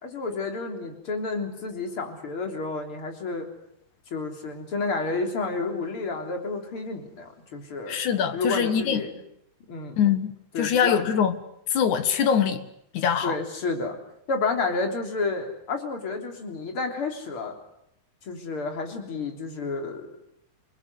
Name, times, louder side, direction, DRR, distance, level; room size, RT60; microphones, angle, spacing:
voice 1, 0.0-3.5 4.1-8.0 8.3-9.1 9.7-10.1 10.5-11.1 13.2-14.0 14.3-17.6 18.3-20.1, left 3 dB, 35° left, 4.1 m, -30 dB
voice 2, 7.9-9.0 10.0-11.4 11.7-12.7 12.9-13.4, left 8 dB, 60° left, 2.7 m, -23 dB
29.0 x 20.0 x 8.2 m
omnidirectional pair, 4.3 m